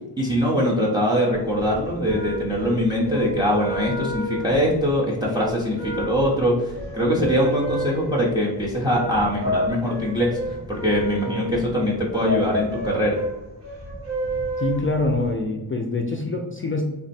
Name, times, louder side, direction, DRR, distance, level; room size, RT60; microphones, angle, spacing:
voice 1, 0.2-10.4 10.7-13.2, equal, 10° right, -5 dB, 0.7 m, -22 dB
sound 1, 1.4-15.3, right 1 dB, 60° right, 1.5 m, -31 dB
voice 2, 14.6-16.8, left 2 dB, 30° left, 2 dB, 0.3 m, -25 dB
3.4 x 2.1 x 4.1 m, 1.0 s
wide cardioid pair, 130°, 44 cm